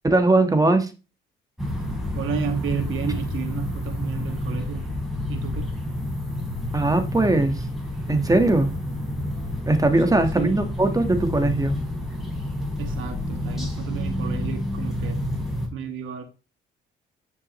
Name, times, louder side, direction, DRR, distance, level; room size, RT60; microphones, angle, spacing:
voice 1, 0.0-0.9 6.7-7.6 8.1-8.7 9.7-11.7, right 2 dB, 15° right, 1.6 m, -20 dB
sound 1, 1.6-15.7, left 1 dB, ahead, 4.4 m, -29 dB
voice 2, 2.1-4.9 5.3-5.7 10.1-10.6 12.8-15.2 15.7-16.2, right 7 dB, 80° right, 2.0 m, -32 dB
9.6 x 6.4 x 3.2 m
cardioid pair, 90°, 20 cm